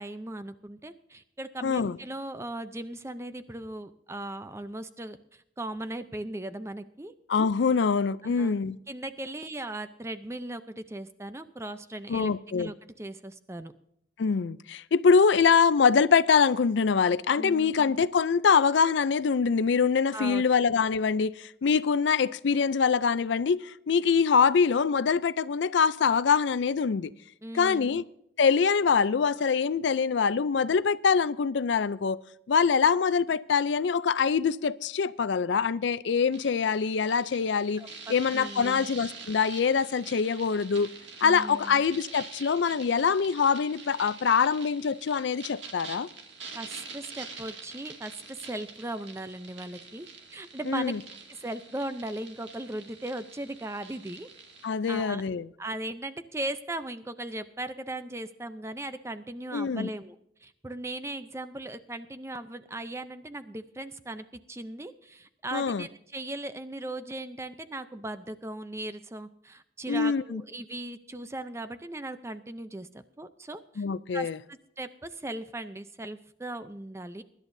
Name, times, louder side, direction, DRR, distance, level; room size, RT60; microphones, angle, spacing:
voice 1, 0.0-7.1 8.2-8.6 8.9-12.3 12.6-13.7 17.4-17.7 20.1-20.5 27.4-28.0 37.8-38.9 41.2-41.8 46.5-50.9 51.3-54.3 54.9-55.2 55.6-73.8 74.1-77.2, right 1 dB, 15° right, 0.5 m, -38 dB
voice 2, 1.6-2.0 7.3-8.8 12.1-12.7 14.2-27.1 27.5-28.0 28.4-32.2 32.5-37.8 38.1-40.9 41.2-46.1 50.7-51.0 54.6-55.5 59.5-59.9 65.5-65.8 69.9-70.4 73.8-74.4, left 5 dB, 75° left, 0.4 m, -24 dB
sound 1, 36.3-54.7, right 5 dB, 75° right, 2.2 m, -46 dB
23.5 x 11.5 x 2.7 m
head